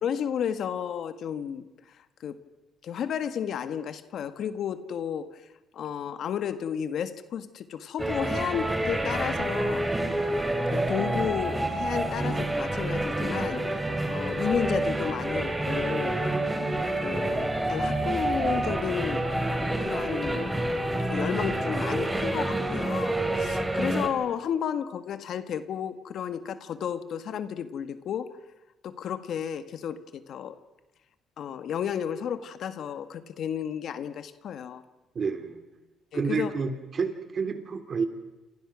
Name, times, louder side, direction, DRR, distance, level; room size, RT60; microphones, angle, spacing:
voice 1, 0.0-1.7 2.2-2.4 2.8-5.4 5.7-9.9 10.7-13.6 14.1-16.2 17.0-19.3 19.8-28.4 28.8-30.6 31.4-34.8 36.1-36.5, left 8 dB, 65° left, 11 dB, 1.6 m, -32 dB
sound 1, 8.0-24.1, right 1 dB, 10° right, 3.8 m, -28 dB
voice 2, 35.2-35.6 36.1-38.1, right 5 dB, 40° right, 8 dB, 3.4 m, -29 dB
28.5 x 28.0 x 6.3 m, 1.1 s
cardioid pair, 110°, 0 cm